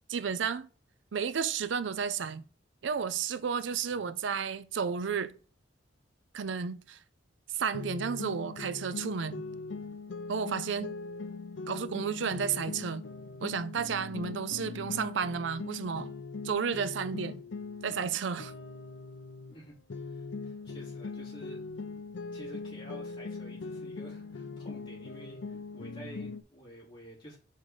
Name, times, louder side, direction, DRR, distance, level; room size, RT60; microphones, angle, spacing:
voice 1, 0.1-0.7 1.1-2.4 2.8-5.3 6.3-7.0 7.5-9.4 10.3-11.0 11.7-13.0 13.4-16.1 16.4-17.4 17.8-18.5, right 6 dB, 80° right, 0.5 m, -32 dB
sound 1, 7.7-19.6 19.9-26.4, left 4 dB, 80° left, 0.6 m, -41 dB
voice 2, 19.5-21.6 22.3-27.4, equal, 30° left, 2.8 m, -50 dB
5.6 x 3.7 x 4.9 m
head